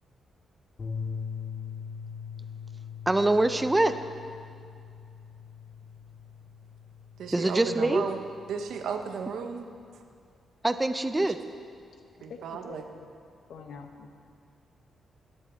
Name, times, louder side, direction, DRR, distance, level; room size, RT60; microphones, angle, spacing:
sound 1, 0.8-9.2, left 6 dB, 35° left, 2.3 m, -41 dB
voice 1, 3.1-3.9 7.3-8.0 10.6-11.4, right 2 dB, 15° right, 10 dB, 0.5 m, -24 dB
voice 2, 7.2-8.2 8.5-9.7 12.2-12.8, right 6 dB, 90° right, 6 dB, 0.9 m, -34 dB
voice 3, 12.3-13.1 13.5-14.2, left 5 dB, 75° left, 4 dB, 1.1 m, -45 dB
12.0 x 10.0 x 4.4 m, 2.3 s
cardioid pair, 135°, 0 cm